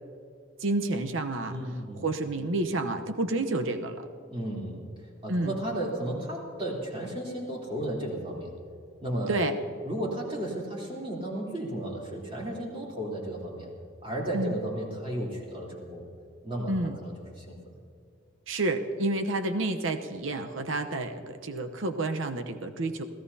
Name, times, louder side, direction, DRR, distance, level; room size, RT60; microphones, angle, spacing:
voice 1, 0.6-1.6 2.0-4.0 5.3-5.6 9.3-9.5 14.3-14.6 16.7-17.0 18.5-23.0, right 2 dB, 90° right, 6 dB, 1.0 m, -29 dB
voice 2, 1.5-2.0 4.3-8.5 9.0-9.4 9.8-13.7 14.0-16.1 16.4-17.7, right 1 dB, 25° right, -3 dB, 3.4 m, -34 dB
28.0 x 16.0 x 2.8 m, 2.4 s
head